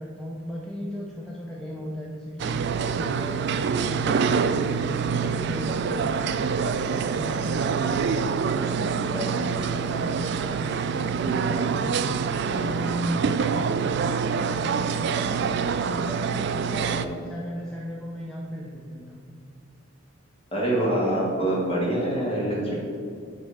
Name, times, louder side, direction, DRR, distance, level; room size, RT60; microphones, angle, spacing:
voice 1, 0.0-3.5 3.8-6.5 6.9-8.0 8.6-12.0 12.4-13.9 14.5-15.5 15.9-19.2, equal, 5° left, -3 dB, 0.5 m, -35 dB
sound 1, 2.4-17.1, right 6 dB, 55° right, 0.3 m, -26 dB
voice 2, 16.7-17.1 20.5-22.7, right 1 dB, 25° left, -4 dB, 1.9 m, -26 dB
8.2 x 3.4 x 6.3 m, 2.4 s
head